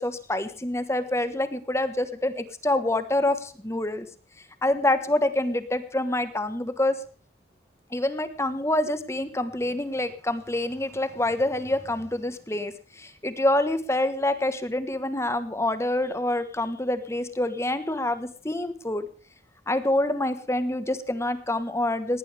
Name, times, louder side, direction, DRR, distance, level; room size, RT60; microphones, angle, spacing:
voice 1, 0.0-4.1 4.6-7.0 7.9-19.1 19.7-22.2, left 1 dB, 15° left, 11 dB, 1.3 m, -26 dB
19.5 x 18.5 x 3.4 m, 0.40 s
head